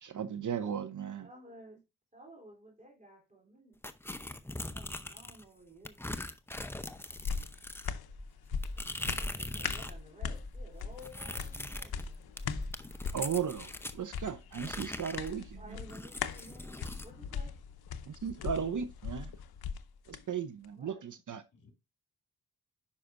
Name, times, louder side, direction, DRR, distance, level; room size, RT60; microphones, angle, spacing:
voice 1, 0.0-1.3 13.1-15.8 18.1-19.3 20.1-21.4, right 7 dB, 55° right, 0.7 m, -36 dB
voice 2, 1.2-1.8 2.1-3.8 4.6-6.2 9.0-12.2 15.6-17.5 20.8-21.0, equal, 20° right, 3.4 m, -54 dB
sound 1, 3.8-5.4 5.8-10.0 10.3-14.0 14.5-17.1, left 1 dB, 5° left, 0.7 m, -41 dB
sound 2, 6.9-20.2 20.6-20.7, left 7 dB, 75° left, 0.8 m, -41 dB
voice 3, 17.1-17.5 18.2-18.7 21.5-21.7, left 6 dB, 55° left, 3.3 m, -56 dB
9.7 x 5.7 x 2.5 m
cardioid pair, 90°, 37 cm